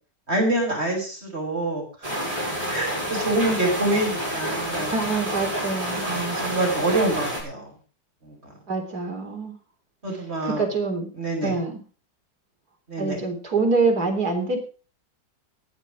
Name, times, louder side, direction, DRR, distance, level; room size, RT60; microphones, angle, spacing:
voice 1, 0.3-2.1 2.7-4.9 6.0-7.7 8.2-8.5 10.0-10.7 11.1-11.6 12.9-13.2, right 2 dB, 35° right, 1 dB, 6.5 m, -26 dB
sound 1, 2.0-7.4, right 1 dB, 20° right, 6.8 m, -29 dB
voice 2, 4.9-6.1 8.7-9.6 10.4-11.1 11.4-11.7 13.0-14.6, right 3 dB, 55° right, 3 dB, 4.2 m, -25 dB
15.0 x 11.0 x 5.1 m, 0.37 s
omnidirectional pair, 1.9 m